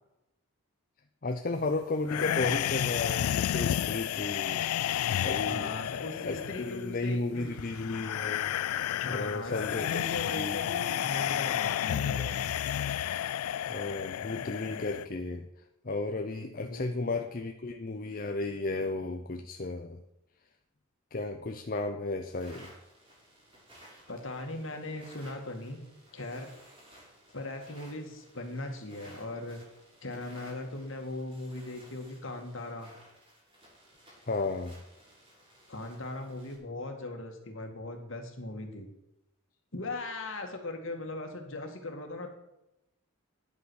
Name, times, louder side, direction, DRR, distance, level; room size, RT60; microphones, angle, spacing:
voice 1, 1.2-4.6 5.2-5.7 6.2-8.5 9.1-9.8 10.3-10.6 13.7-15.5 15.8-20.0 21.1-22.7 34.3-34.8, left 2 dB, 40° left, 5 dB, 0.7 m, -33 dB
sound 1, 2.1-15.0, left 11 dB, 85° left, 0.3 m, -31 dB
voice 2, 5.5-7.6 9.0-12.5 16.6-17.2 24.1-25.8 26.1-26.5 27.3-29.6 30.0-32.9 35.7-38.9 39.7-42.3, left 2 dB, 60° left, 4 dB, 2.1 m, -39 dB
sound 2, 22.2-36.6, equal, 25° right, 5.1 m, -57 dB
10.5 x 8.3 x 6.4 m, 0.89 s
head